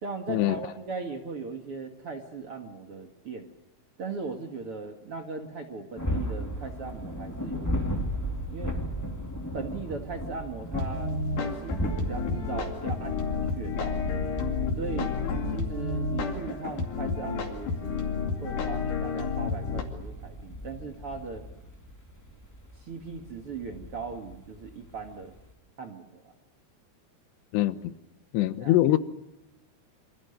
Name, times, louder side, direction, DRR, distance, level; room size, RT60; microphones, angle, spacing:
voice 1, 0.0-3.5 4.0-8.8 9.5-11.1 11.6-14.0 14.8-15.2 15.5-18.1 18.4-21.4 22.8-25.3 25.8-26.3 28.6-28.8, right 4 dB, 45° right, 4 dB, 2.1 m, -38 dB
sound 1, 6.0-25.5, equal, 5° left, 2.0 m, -36 dB
sound 2, 10.7-19.8, left 4 dB, 55° left, 3.7 m, -31 dB
voice 2, 27.5-27.9 28.3-29.0, left 15 dB, 85° left, 13 dB, 3.2 m, -23 dB
27.0 x 26.0 x 6.7 m, 0.95 s
omnidirectional pair, 4.8 m